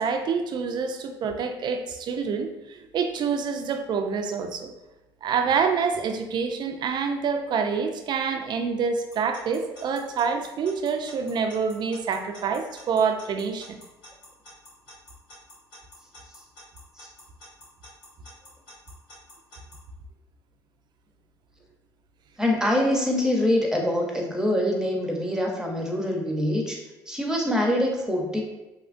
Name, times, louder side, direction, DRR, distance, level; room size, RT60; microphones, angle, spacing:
voice 1, 0.0-4.7 5.2-13.8, right 5 dB, 55° right, 6 dB, 0.4 m, -27 dB
Alarm / Clock, 9.1-19.8, left 1 dB, 90° left, 1.3 m, -48 dB
voice 2, 22.4-26.8 27.1-28.4, left 1 dB, 5° right, 0 dB, 0.7 m, -24 dB
2.8 x 2.4 x 2.4 m, 1.0 s
supercardioid pair, 70°, 9 cm